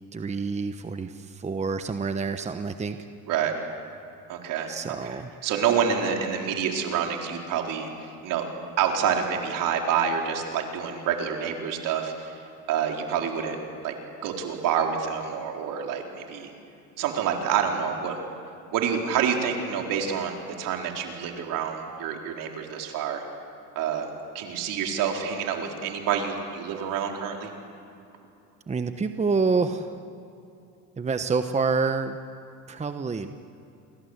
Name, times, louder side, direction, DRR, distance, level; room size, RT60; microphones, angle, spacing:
voice 1, 0.1-3.0 4.7-5.3 28.7-29.9 31.0-32.2 32.7-33.4, right 4 dB, 20° right, 8 dB, 1.1 m, -27 dB
voice 2, 4.3-8.4 8.8-12.4 12.7-13.9 14.2-16.5 17.0-18.2 18.7-23.2 23.7-24.1 24.3-27.5, right 7 dB, 65° right, 2 dB, 4.4 m, -28 dB
28.5 x 22.5 x 8.1 m, 2.7 s
supercardioid pair, 95°, 35 cm